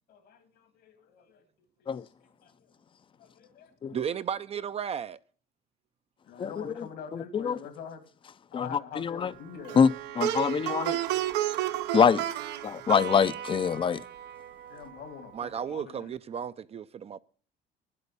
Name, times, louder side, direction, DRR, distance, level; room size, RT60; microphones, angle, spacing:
voice 1, 0.1-1.5 1.8-2.1 2.4-2.7 3.2-3.7 6.2-8.1 8.5-9.8 14.7-16.1, left 7 dB, 75° left, 2.5 m, -45 dB
voice 2, 3.9-5.2 15.3-17.2, right 8 dB, 35° right, 0.4 m, -34 dB
voice 3, 7.1-7.6 8.5-8.7 9.0-9.3 9.8-9.9 10.2-11.0 11.9-12.2 12.6-14.0, left 6 dB, 30° left, 0.5 m, -24 dB
Plucked string instrument, 9.7-14.9, right 13 dB, 90° right, 0.9 m, -32 dB
9.5 x 8.4 x 6.7 m
cardioid pair, 110°, 17 cm